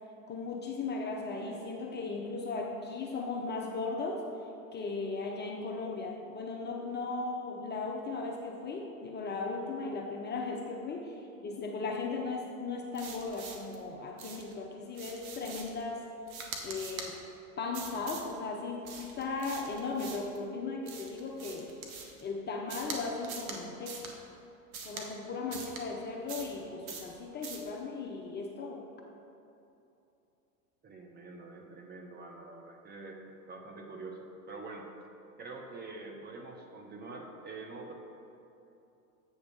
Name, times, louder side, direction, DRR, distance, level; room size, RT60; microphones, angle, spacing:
voice 1, 0.3-4.2 4.7-16.1 16.6-17.2 17.6-21.7 22.2-24.1 24.8-28.8, left 3 dB, 25° left, 1 dB, 0.6 m, -37 dB
sound 1, 12.9-13.8 14.2-14.5 14.9-15.8 16.3-17.1 17.7-18.3 18.8-20.4 20.9-22.2 22.7-23.0 23.2-23.6 23.9-24.1 24.7-25.1 25.5-25.8 26.3-26.6 26.9-27.1 27.4-27.7, right 5 dB, 75° right, 1.2 m, -43 dB
voice 2, 30.8-33.2 33.5-34.9 35.4-37.9, right 3 dB, 25° right, 2 dB, 0.9 m, -45 dB
7.9 x 3.6 x 6.2 m, 2.8 s
hypercardioid pair, 95°, 43 cm